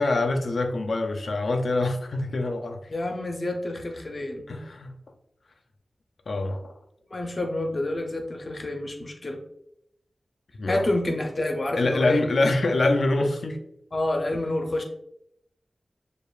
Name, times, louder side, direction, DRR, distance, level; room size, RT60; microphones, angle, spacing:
voice 1, 0.0-2.8 4.5-5.0 6.3-6.7 10.6-10.9 11.8-13.6, left 2 dB, 80° left, 5 dB, 0.5 m, -25 dB
voice 2, 2.9-4.4 7.1-9.4 10.7-12.2 13.9-14.8, left 1 dB, 45° left, 3 dB, 0.7 m, -28 dB
6.6 x 2.5 x 2.4 m, 0.77 s
wide cardioid pair, 85°, 0 cm